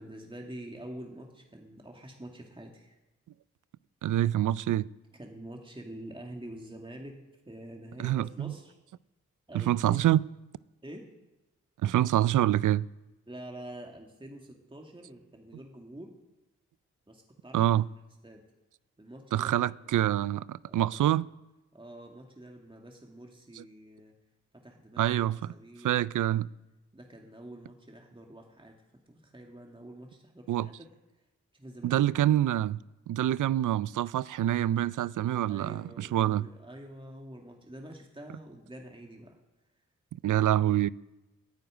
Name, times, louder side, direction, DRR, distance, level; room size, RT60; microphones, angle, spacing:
voice 1, 0.0-3.0 5.2-7.2 7.4-8.8 9.5-10.0 10.8-11.1 13.3-16.1 17.1-17.6 18.2-18.4 19.0-20.1 20.6-21.1 21.7-24.1 24.5-25.1 25.5-26.0 26.9-28.8 29.1-30.9 31.5-32.0 35.5-39.4 40.2-40.4, right 1 dB, 15° right, 2.5 m, -46 dB
voice 2, 4.0-4.9 8.0-8.5 9.5-10.2 11.8-12.9 17.5-17.9 19.3-21.2 23.6-23.7 25.0-25.5 25.8-26.5 30.5-30.7 31.8-32.8 33.1-36.5 40.1-40.9, right 12 dB, 75° right, 0.5 m, -26 dB
10.5 x 9.4 x 9.1 m
supercardioid pair, 45°, 31 cm